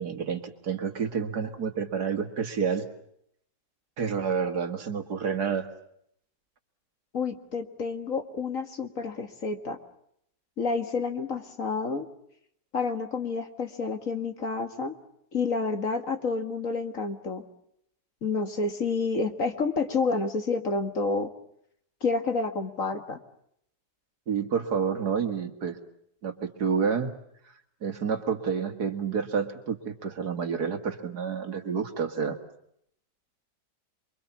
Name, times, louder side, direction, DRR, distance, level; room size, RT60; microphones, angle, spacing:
voice 1, 0.0-2.9 4.0-5.7 24.3-25.8 26.2-27.1 27.8-32.4, right 6 dB, 65° right, 7 dB, 2.2 m, -29 dB
voice 2, 7.1-9.8 10.6-12.1 12.7-15.0 15.3-17.4 18.2-21.3 22.0-23.2, left 4 dB, 50° left, 7 dB, 2.1 m, -29 dB
28.0 x 23.5 x 7.0 m, 0.74 s
omnidirectional pair, 1.9 m